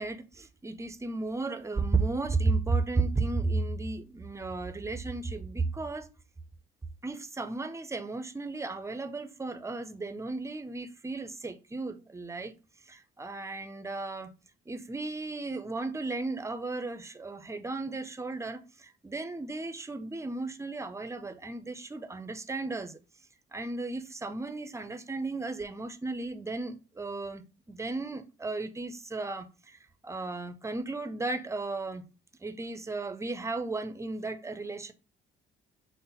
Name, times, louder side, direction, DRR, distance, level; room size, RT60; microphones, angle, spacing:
voice 1, 0.0-6.1 7.0-12.5 12.9-14.3 14.7-23.0 23.5-29.8 30.0-32.0 32.4-34.9, right 3 dB, 15° right, 0.5 m, -34 dB
5.4 x 2.1 x 4.0 m
cardioid pair, 90°, 20 cm